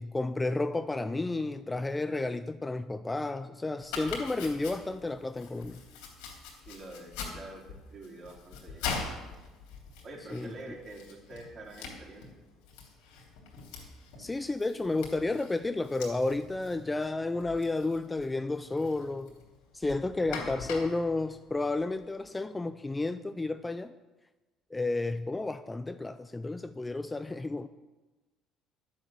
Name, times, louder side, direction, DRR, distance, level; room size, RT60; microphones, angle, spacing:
voice 1, 0.0-5.8 10.3-10.8 14.2-19.3 19.7-23.9 24.7-27.7, left 2 dB, 15° left, 0.4 m, -32 dB
Domestic sounds home sounds, 3.8-22.3, left 5 dB, 90° left, 3.3 m, -43 dB
voice 2, 6.7-9.3 10.0-12.4, right 2 dB, 45° right, 3.8 m, -47 dB
10.5 x 7.9 x 7.8 m
cardioid pair, 105°, 0 cm